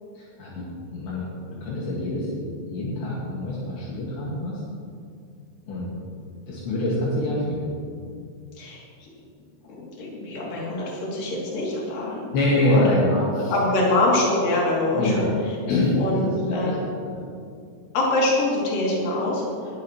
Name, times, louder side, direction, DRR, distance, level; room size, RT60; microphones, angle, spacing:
voice 1, 0.2-1.3 1.5-4.6 5.7-5.9 6.5-7.7 12.3-13.5 14.9-15.3 15.7-16.8 17.1-17.2, left 1 dB, 70° left, -6 dB, 3.9 m, -25 dB
voice 2, 8.6-9.1 9.7-12.4 12.6-12.9 13.5-15.3 16.0-16.8 17.9-19.4, left 2 dB, 50° left, -5 dB, 4.1 m, -24 dB
20.0 x 12.0 x 3.1 m, 2.3 s
omnidirectional pair, 5.5 m